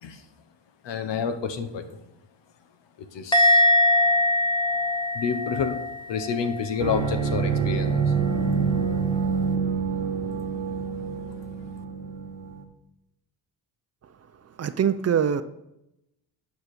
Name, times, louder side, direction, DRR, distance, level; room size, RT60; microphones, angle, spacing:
voice 1, 0.8-2.0 3.1-3.7 5.1-8.1 11.1-11.2, left 6 dB, 75° left, 8 dB, 1.1 m, -29 dB
Musical instrument, 3.3-6.7 7.0-7.4, left 1 dB, 10° left, 0.8 m, -22 dB
sound 1, 6.8-12.6, right 5 dB, 85° right, 1.1 m, -26 dB
voice 2, 14.6-15.4, right 8 dB, 35° right, 12 dB, 0.5 m, -23 dB
9.3 x 5.2 x 4.2 m, 0.84 s
cardioid pair, 95°, 43 cm